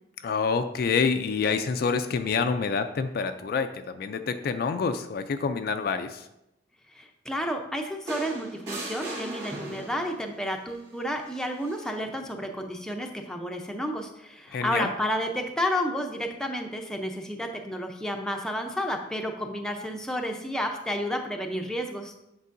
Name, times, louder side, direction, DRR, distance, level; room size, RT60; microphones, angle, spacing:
voice 1, 0.2-6.3 14.5-14.9, left 5 dB, 50° left, 8 dB, 0.3 m, -27 dB
voice 2, 6.9-22.2, equal, 5° left, 3 dB, 0.5 m, -31 dB
sound 1, 8.1-10.2 11.6-11.8, right 2 dB, 60° right, 2.3 m, -37 dB
8.1 x 5.4 x 2.5 m, 0.86 s
head